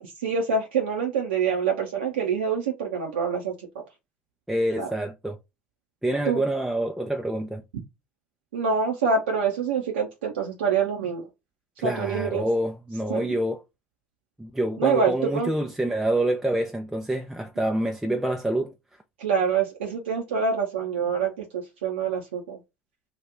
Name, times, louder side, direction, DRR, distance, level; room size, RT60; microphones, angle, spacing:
voice 1, 0.2-3.7 4.8-4.9 6.3-6.4 8.5-11.3 11.8-12.4 13.1-13.4 14.8-15.5 19.2-22.6, right 5 dB, 75° right, 0.7 m, -26 dB
voice 2, 4.5-5.4 6.0-7.6 11.8-13.6 14.4-18.7, right 1 dB, 5° right, 0.5 m, -27 dB
2.9 x 2.4 x 3.4 m
hypercardioid pair, 70°, 6 cm